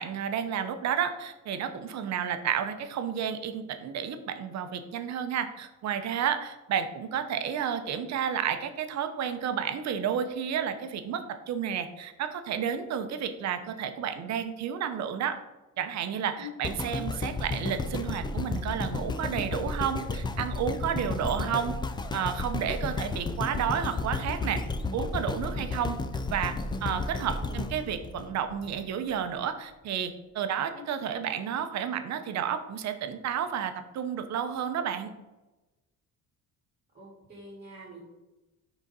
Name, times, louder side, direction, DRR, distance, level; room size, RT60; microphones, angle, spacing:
voice 1, 0.0-15.4 15.8-21.8 22.1-24.6 24.9-26.0 26.3-26.5 26.8-35.1, right 8 dB, 60° right, 9 dB, 0.8 m, -31 dB
sound 1, 16.6-28.8 29.4-29.5, left 3 dB, 15° left, 0.3 m, -33 dB
voice 2, 27.3-27.7 30.7-30.8 36.9-38.0, left 2 dB, 30° right, -5 dB, 1.9 m, -45 dB
6.1 x 4.0 x 5.4 m, 1.1 s
cardioid pair, 150°, 31 cm